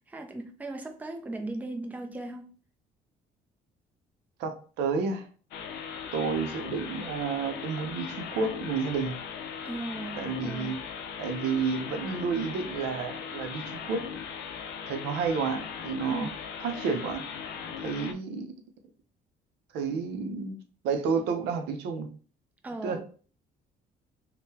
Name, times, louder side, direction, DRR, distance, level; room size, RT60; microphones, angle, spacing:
voice 1, 0.1-2.5 9.7-10.8 16.1-16.3 22.6-23.0, right 2 dB, 10° right, 0.5 m, -37 dB
voice 2, 4.4-5.3 6.1-9.2 10.2-10.8 11.2-14.1 14.9-16.3 16.6-17.2 17.8-18.5 19.7-20.6 20.8-22.1 22.8-23.0, right 5 dB, 80° right, 0.6 m, -30 dB
sound 1, 5.5-18.1, left 7 dB, 80° left, 0.5 m, -39 dB
3.6 x 2.1 x 2.7 m
cardioid pair, 110°, 17 cm